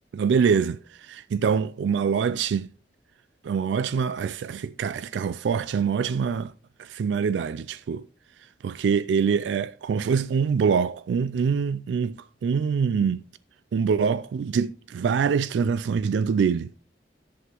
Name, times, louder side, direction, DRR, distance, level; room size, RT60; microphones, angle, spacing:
voice 1, 0.1-2.7 3.4-6.5 6.8-8.0 8.6-12.2 12.4-13.2 13.7-16.7, right 6 dB, 80° right, 0.3 m, -24 dB
11.0 x 7.9 x 2.9 m
head